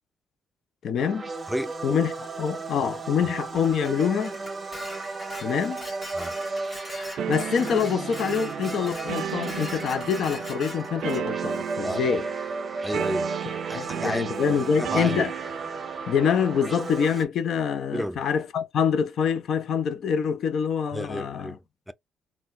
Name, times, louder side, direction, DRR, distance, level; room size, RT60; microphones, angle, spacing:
voice 1, 0.8-1.3 1.8-4.4 5.4-5.9 7.3-12.3 13.7-15.3 16.1-21.6, left 7 dB, 65° left, 0.5 m, -25 dB
sound 1, 1.0-17.2, right 3 dB, 30° right, 0.7 m, -35 dB
Dishes pots and pans, 3.5-11.3, left 1 dB, 25° left, 1.3 m, -42 dB
sound 2, 7.2-17.2, right 10 dB, 75° right, 0.3 m, -34 dB
voice 2, 12.8-13.3 13.7-15.2 17.9-18.2 20.9-21.9, equal, ahead, 0.3 m, -32 dB
3.8 x 2.3 x 2.5 m
cardioid pair, 90°, 0 cm